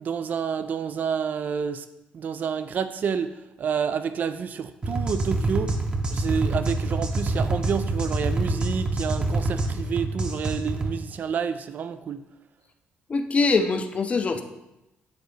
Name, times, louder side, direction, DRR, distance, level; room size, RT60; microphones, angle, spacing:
voice 1, 0.0-1.9 2.1-5.8 6.1-12.2, right 7 dB, 50° right, 11 dB, 0.3 m, -29 dB
sound 1, 4.8-10.9, right 2 dB, 25° right, 0.8 m, -26 dB
voice 2, 13.1-14.4, left 4 dB, 35° left, 7 dB, 0.6 m, -23 dB
9.4 x 3.9 x 3.3 m, 0.93 s
cardioid pair, 105°, 4 cm